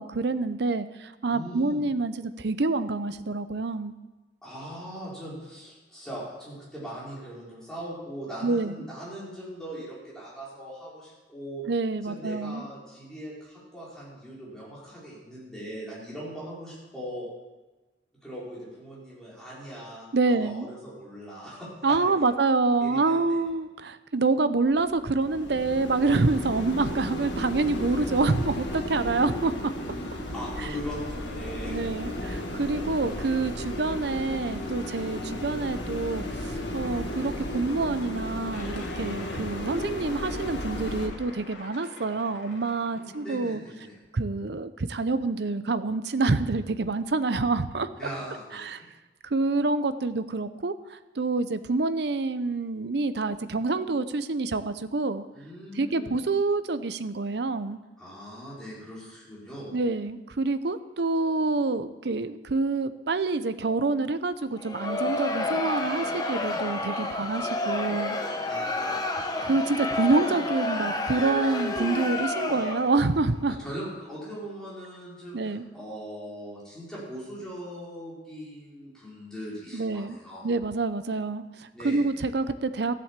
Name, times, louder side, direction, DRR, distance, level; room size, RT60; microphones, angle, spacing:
voice 1, 0.0-3.9 8.4-8.8 11.7-12.6 20.1-20.7 21.8-29.7 31.7-43.6 44.1-47.9 48.5-48.8 49.3-55.3 55.7-57.8 59.7-68.2 69.4-73.6 75.3-75.6 79.7-80.2 80.4-82.9, right 3 dB, 60° right, 12 dB, 0.6 m, -27 dB
voice 2, 1.3-1.8 4.4-11.6 12.0-17.3 18.2-22.4 22.8-23.5 30.3-32.0 42.9-44.0 48.0-48.9 55.3-56.2 58.0-59.7 68.5-69.2 69.7-69.8 73.6-80.4 81.7-82.0, equal, 5° left, -8 dB, 4.8 m, -40 dB
sound 1, 24.8-41.1, left 1 dB, 70° left, 1.7 m, -34 dB
sound 2, 38.5-43.5, left 2 dB, 90° left, 2.3 m, -45 dB
Crowd, 64.6-73.1, left 2 dB, 20° left, 1.0 m, -30 dB
14.0 x 7.8 x 7.4 m, 1.1 s
head